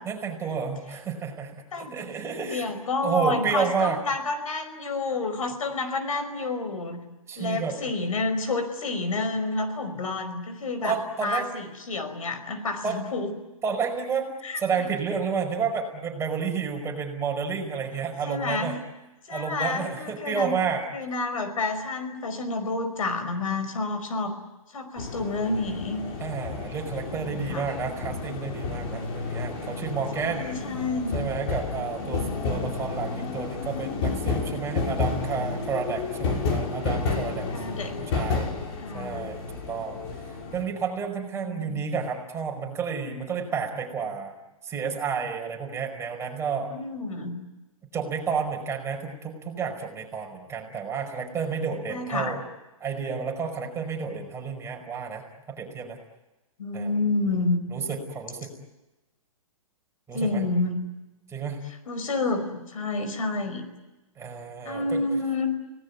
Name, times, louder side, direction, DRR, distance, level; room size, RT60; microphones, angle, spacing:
voice 1, 0.1-2.7 3.0-4.0 7.3-7.8 10.8-11.5 12.8-13.0 13.6-14.3 14.6-18.8 19.3-20.8 26.2-30.5 31.1-37.5 38.0-38.5 38.9-40.0 40.5-44.3 44.6-46.7 47.9-52.4 52.8-55.2 55.5-56.0 56.7-56.9 57.7-58.5 60.1-60.4 61.3-61.6 64.2-65.0, right 6 dB, 15° right, 2 dB, 5.2 m, -30 dB
voice 2, 1.7-2.1 2.5-7.0 7.4-11.0 11.2-13.3 14.4-14.6 18.3-18.8 19.3-20.5 20.9-24.3 24.7-26.0 27.2-27.7 30.1-31.2 32.0-32.3 37.5-38.0 38.8-39.2 41.3-41.8 46.7-47.3 51.9-52.4 56.6-57.6 60.1-60.8 61.9-63.6 64.6-65.5, left 3 dB, 75° left, 8 dB, 5.1 m, -29 dB
sound 1, 25.0-40.6, left 4 dB, 45° left, 6.0 m, -31 dB
30.0 x 19.0 x 9.4 m, 1.1 s
hypercardioid pair, 130°, 18 cm